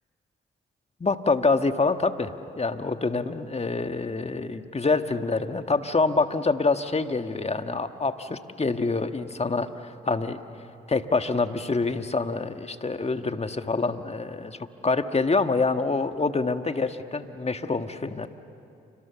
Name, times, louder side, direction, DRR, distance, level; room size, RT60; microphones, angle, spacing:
voice 1, 1.0-10.4 10.9-18.3, left 3 dB, 30° left, 8 dB, 1.6 m, -26 dB
29.5 x 26.0 x 7.1 m, 2.8 s
supercardioid pair, 50°, 21 cm